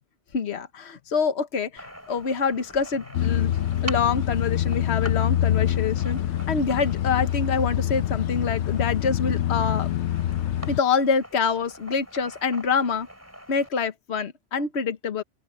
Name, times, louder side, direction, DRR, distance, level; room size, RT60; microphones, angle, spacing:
voice 1, 0.3-3.6 3.8-6.2 6.5-9.9 10.7-13.1 13.5-15.2, left 5 dB, 70° left, 1.4 m, -26 dB
sound 1, 1.8-13.7, equal, 15° right, 3.5 m, -44 dB
sound 2, 3.1-10.8, left 11 dB, 90° left, 0.9 m, -25 dB
open air
omnidirectional pair, 1.2 m